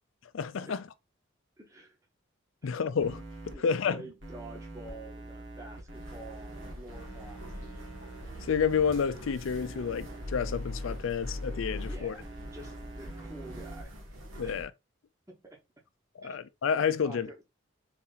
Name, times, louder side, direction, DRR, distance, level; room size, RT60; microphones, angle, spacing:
voice 1, 0.3-0.9 2.6-4.0 8.5-12.1 14.4-14.7 16.2-17.3, left 6 dB, 75° left, 0.4 m, -30 dB
voice 2, 1.6-2.0 2.6-2.7 3.5-7.9 11.9-13.9 14.4-14.6 15.3-15.6 16.2-16.4 17.0-17.4, right 2 dB, 15° right, 1.0 m, -49 dB
sound 1, 3.0-3.5 4.2-13.8, equal, 55° right, 1.7 m, -42 dB
sound 2, 5.9-14.6, equal, 80° right, 1.5 m, -46 dB
4.0 x 2.9 x 3.8 m
head